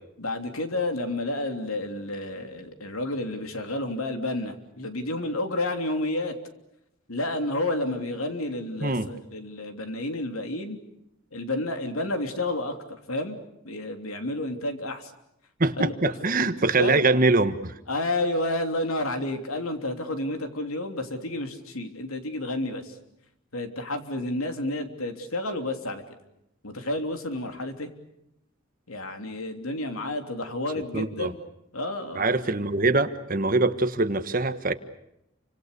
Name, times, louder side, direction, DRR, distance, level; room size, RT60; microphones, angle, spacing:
voice 1, 0.2-6.4 7.1-10.8 11.3-12.8 13.1-13.4 13.6-15.1 15.8-16.1 16.7-17.0 17.9-23.0 23.5-26.0 26.6-27.9 28.9-31.4 31.7-32.3, left 2 dB, 90° left, 6 dB, 3.2 m, -30 dB
voice 2, 15.6-17.7 30.9-31.3 32.2-34.7, right 3 dB, 40° right, 10 dB, 1.4 m, -23 dB
29.5 x 25.0 x 6.8 m, 0.83 s
head